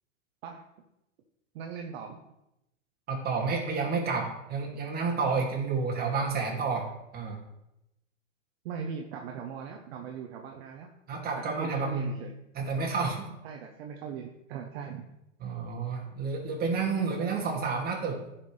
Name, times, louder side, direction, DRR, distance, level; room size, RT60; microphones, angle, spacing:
voice 1, 1.5-2.2 8.6-10.9 11.4-12.3 13.4-15.2, right 6 dB, 50° right, 2 dB, 1.0 m, -39 dB
voice 2, 3.1-6.9 7.1-7.4 11.1-12.1 12.5-13.3 15.4-18.2, right 4 dB, 25° right, -1 dB, 2.4 m, -30 dB
14.0 x 5.8 x 3.3 m, 0.89 s
hypercardioid pair, 120°, 38 cm